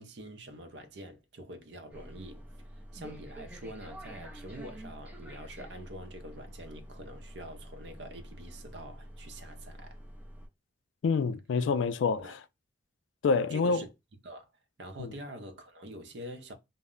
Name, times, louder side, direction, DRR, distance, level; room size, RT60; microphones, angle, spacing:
voice 1, 0.0-10.0 12.2-12.4 13.5-13.9 14.2-14.5 14.8-16.5, right 1 dB, 65° right, 0.6 m, -45 dB
sound 1, 1.9-10.5, equal, 10° right, 0.4 m, -47 dB
voice 2, 11.0-12.4 13.2-13.8 15.0-15.1, left 4 dB, 80° left, 0.3 m, -27 dB
2.1 x 2.0 x 3.6 m
head